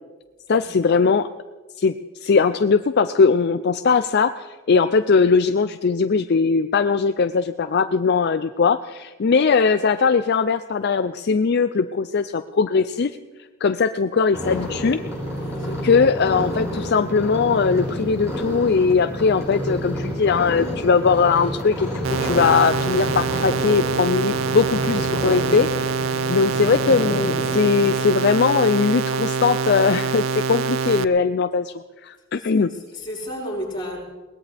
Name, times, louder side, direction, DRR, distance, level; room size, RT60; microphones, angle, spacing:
voice 1, 0.5-1.3 1.8-1.9 2.2-13.1 13.6-15.0 15.8-21.9 22.2-32.7, left 5 dB, 50° left, 10 dB, 0.4 m, -20 dB
sound 1, 14.3-28.0, equal, 15° right, 7.5 m, -30 dB
voice 2, 15.4-16.2 32.6-32.7 32.9-34.0, equal, 25° left, -5 dB, 5.3 m, -33 dB
sound 2, 22.0-31.0, right 5 dB, 65° right, 0.5 m, -25 dB
22.0 x 19.5 x 3.5 m, 1.2 s
head